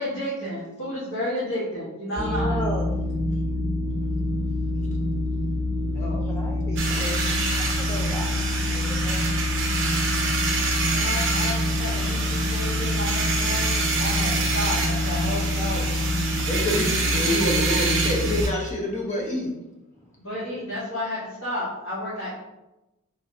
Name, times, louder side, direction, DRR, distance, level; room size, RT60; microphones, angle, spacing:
voice 1, 0.0-2.6 10.9-15.8 20.2-22.3, left 1 dB, 60° left, -9 dB, 1.4 m, -32 dB
voice 2, 2.1-3.0 6.3-7.2 7.8-8.3 8.7-9.2, left 1 dB, 15° left, -2 dB, 0.4 m, -34 dB
sound 1, 2.2-18.4, left 1 dB, 25° right, 1.0 m, -26 dB
sound 2, 6.8-18.5, right 4 dB, 55° right, 1.0 m, -27 dB
voice 3, 16.5-19.5, left 1 dB, 35° left, -2 dB, 1.0 m, -27 dB
4.3 x 3.7 x 2.7 m, 0.98 s
head